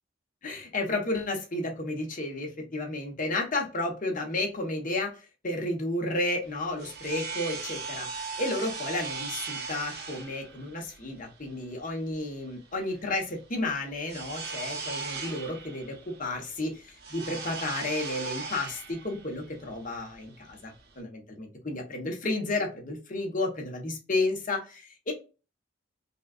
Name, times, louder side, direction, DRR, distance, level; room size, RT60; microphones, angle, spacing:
voice 1, 0.4-5.1 5.4-8.1 8.4-20.7 21.0-25.1, left 2 dB, 45° left, 1 dB, 1.2 m, -32 dB
sound 1, 6.4-21.0, right 4 dB, 55° right, 1.0 m, -39 dB
5.5 x 2.4 x 2.4 m, 0.32 s
head